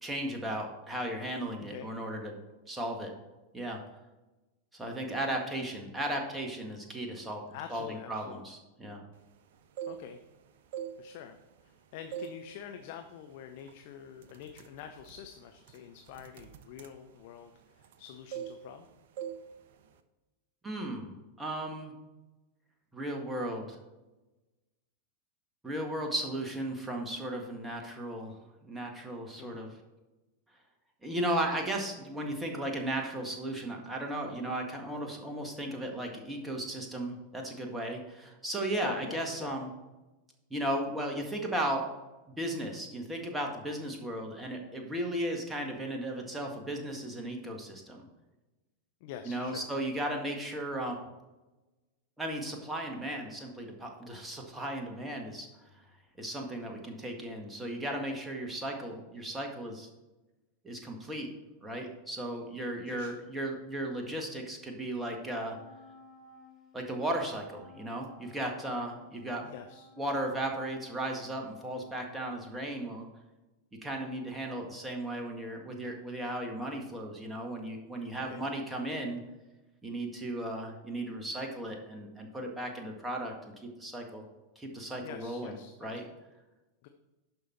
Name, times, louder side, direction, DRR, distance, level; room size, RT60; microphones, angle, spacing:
voice 1, 0.0-2.4 2.7-3.1 3.5-3.8 4.7-7.4 7.7-9.0 20.6-21.9 22.9-23.8 25.6-28.4 28.6-29.7 31.0-39.7 40.5-41.9 42.4-48.0 49.3-51.0 52.2-55.5 56.2-59.9 60.6-61.3 61.6-65.6 66.7-69.5 70.0-73.1 73.8-79.2 79.8-83.5 83.8-84.2 84.6-85.5 85.8-86.0, right 1 dB, 10° right, 1 dB, 1.7 m, -35 dB
voice 2, 1.6-1.9 7.5-8.4 9.9-10.2 11.0-18.9 29.4-29.6 38.8-39.5 49.0-49.6 62.9-63.1 69.4-69.8 78.3-78.4 85.0-86.1 86.8-86.9, left 9 dB, 50° left, 6 dB, 0.6 m, -46 dB
sound 1, 9.5-10.3 10.7-11.7 12.1-12.5 12.8-13.1 13.7-13.8 14.2-18.0 18.3-18.9 19.2-19.5 19.7-20.0, right 9 dB, 55° right, 0.6 m, -42 dB
Wind instrument woodwind instrument, 65.3-73.0, left 2 dB, 20° left, 1.4 m, -55 dB
11.0 x 5.3 x 4.4 m, 1.1 s
figure-of-eight pair, 90°, 0 cm